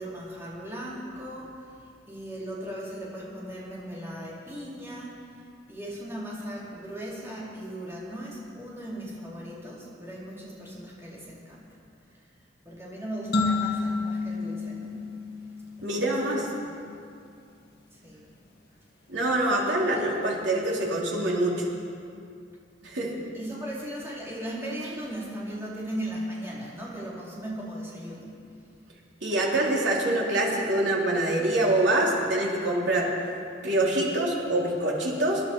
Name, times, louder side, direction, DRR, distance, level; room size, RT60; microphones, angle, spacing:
voice 1, 0.0-1.6 2.1-5.1 5.7-11.7 12.6-15.1 15.8-16.7 17.9-18.3 19.6-20.0 23.3-28.4, equal, 15° right, -6 dB, 3.7 m, -37 dB
sound 1, 13.3-16.0, left 3 dB, 60° left, 2.2 m, -29 dB
voice 2, 15.8-16.4 19.1-21.7 22.8-23.2 29.2-33.1 33.6-35.4, right 1 dB, 75° right, -3 dB, 3.2 m, -25 dB
23.5 x 11.0 x 4.6 m, 2.5 s
head